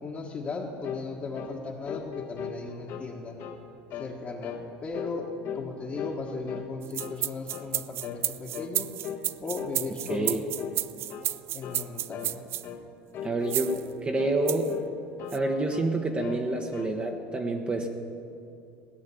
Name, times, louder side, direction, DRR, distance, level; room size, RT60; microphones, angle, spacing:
voice 1, 0.0-3.3 3.9-8.9 9.4-10.4 11.5-12.4, left 3 dB, 30° left, -3 dB, 1.5 m, -37 dB
sound 1, 0.8-1.1 1.3-1.6 1.9-3.1 3.4-3.6 3.9-4.2 4.4-4.7 4.9-5.7 6.0-6.7 7.0-7.2 7.5-7.7 8.0-8.2 8.5-8.7 9.0-9.3 9.6-9.8 10.1-10.3 10.6-10.8 11.1-11.3 11.6-11.9 12.1-12.3 12.6-12.8 13.1-13.9 14.2-14.9 15.2-15.9 16.2-17.0, left 8 dB, 50° left, 1.4 m, -38 dB
sound 2, 6.8-12.6 13.5-13.8 14.5-14.7 15.3-15.4, right 13 dB, 45° right, 0.4 m, -31 dB
voice 2, 10.1-10.4 13.2-13.8 14.0-14.7 15.3-17.9, right 2 dB, 20° right, 3 dB, 1.1 m, -28 dB
17.0 x 6.3 x 9.9 m, 2.6 s
supercardioid pair, 125°, 6 cm